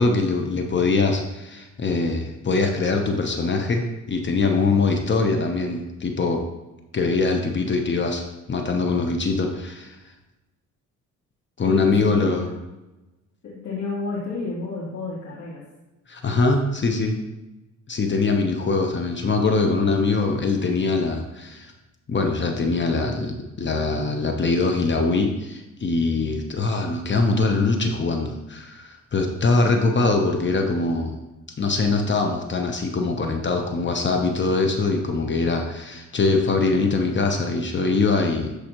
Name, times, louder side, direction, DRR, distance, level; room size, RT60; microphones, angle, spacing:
voice 1, 0.0-6.4 6.9-10.0 11.6-12.5 16.1-17.2 17.9-21.7 22.1-31.2 31.6-38.6, left 3 dB, 40° left, 3 dB, 1.0 m, -22 dB
voice 2, 11.7-12.3 13.4-15.6, left 3 dB, 70° left, -9 dB, 3.1 m, -30 dB
13.0 x 4.9 x 3.1 m, 1.0 s
cardioid pair, 90°, 30 cm